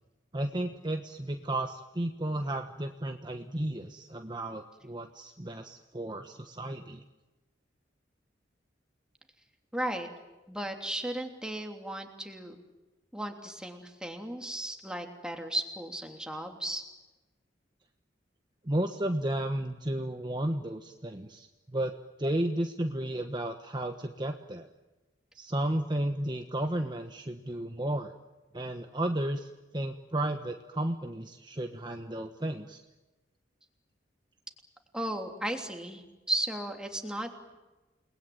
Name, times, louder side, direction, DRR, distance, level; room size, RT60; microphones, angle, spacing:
voice 1, 0.3-7.0 18.6-21.9 22.2-24.7 25.3-28.1 28.5-32.8, right 1 dB, 25° right, 5 dB, 1.2 m, -33 dB
voice 2, 9.7-10.1 10.5-12.6 13.1-16.8 34.9-37.6, right 1 dB, 5° right, 3 dB, 3.1 m, -35 dB
29.5 x 20.5 x 9.3 m, 1.1 s
head